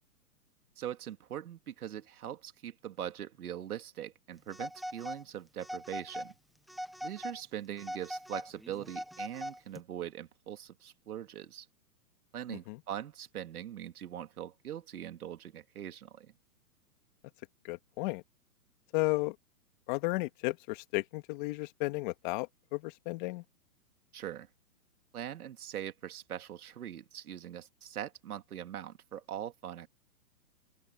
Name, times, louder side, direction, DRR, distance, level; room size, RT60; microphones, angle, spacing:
voice 1, 0.8-6.3 7.0-11.7 12.3-16.3 24.1-24.5 25.1-29.9, right 10 dB, 65° right, 2.7 m, -42 dB
Telephone, 4.5-5.2 5.6-6.3 6.7-7.4 7.8-9.8, equal, ahead, 0.7 m, -41 dB
voice 2, 12.5-12.8 17.6-18.2 18.9-19.4 19.9-23.4, left 23 dB, 30° left, 2.1 m, -34 dB
open air
hypercardioid pair, 150°, 47 cm